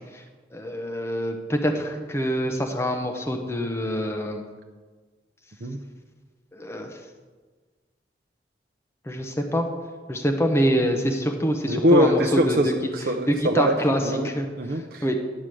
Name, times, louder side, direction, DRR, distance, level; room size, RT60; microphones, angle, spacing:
voice 1, 0.5-4.4 6.5-6.9 9.1-9.7 10.1-12.2 12.5-12.6 13.3-15.2, equal, 15° left, 3 dB, 0.8 m, -25 dB
voice 2, 11.7-14.3 14.6-15.2, equal, 55° right, 2 dB, 0.6 m, -23 dB
11.0 x 5.0 x 7.6 m, 1.4 s
head